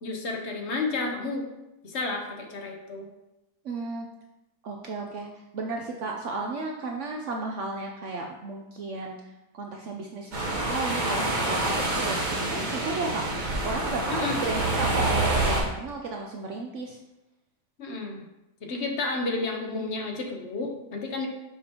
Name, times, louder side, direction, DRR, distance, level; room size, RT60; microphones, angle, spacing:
voice 1, 0.0-1.5 1.8-3.1 14.1-14.4 17.8-18.2 18.7-21.3, left 3 dB, 50° left, 2 dB, 1.0 m, -31 dB
voice 2, 3.6-4.1 4.6-5.3 5.5-9.2 9.5-13.2 13.6-17.0, right 3 dB, 65° right, 1 dB, 0.8 m, -34 dB
sound 1, 10.3-15.6, right 2 dB, 35° right, 0.9 m, -27 dB
6.8 x 5.1 x 2.8 m, 0.94 s
omnidirectional pair, 1.7 m